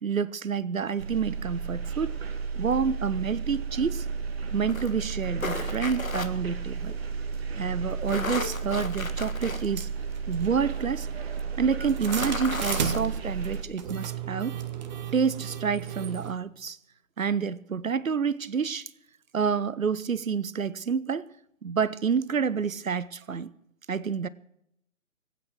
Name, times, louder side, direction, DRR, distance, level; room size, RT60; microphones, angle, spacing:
voice 1, 0.0-2.2 2.6-4.1 4.5-6.9 7.5-9.9 10.3-11.1 11.6-14.6 15.1-16.8 17.2-18.9 19.3-21.3 21.6-23.5 23.9-24.3, right 6 dB, 80° right, 0.8 m, -28 dB
sound 1, 1.0-13.6, right 5 dB, 50° right, 1.7 m, -33 dB
sound 2, 4.7-6.3 7.9-9.6 10.1-10.2 11.8-13.1, left 3 dB, 85° left, 1.6 m, -34 dB
sound 3, 7.3-7.4 8.4-8.5 9.4-16.3, right 8 dB, 35° right, 1.2 m, -35 dB
21.5 x 9.2 x 5.9 m
figure-of-eight pair, 135°, 40 cm